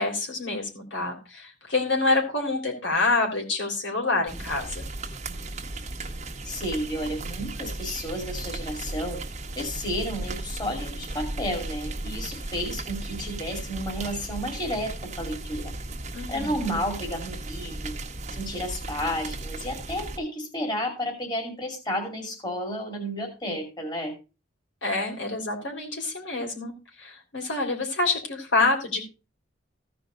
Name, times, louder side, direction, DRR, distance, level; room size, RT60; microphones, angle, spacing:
voice 1, 0.0-4.8 16.1-16.6 24.8-26.7 27.0-29.1, left 3 dB, 70° left, 1 dB, 3.6 m, -27 dB
sound 1, 4.3-20.2, right 2 dB, 35° right, 1.3 m, -36 dB
voice 2, 6.4-9.2 9.5-15.7 16.3-17.9 18.3-24.1, equal, 20° left, 1 dB, 2.6 m, -32 dB
15.0 x 5.2 x 5.1 m, 0.31 s
head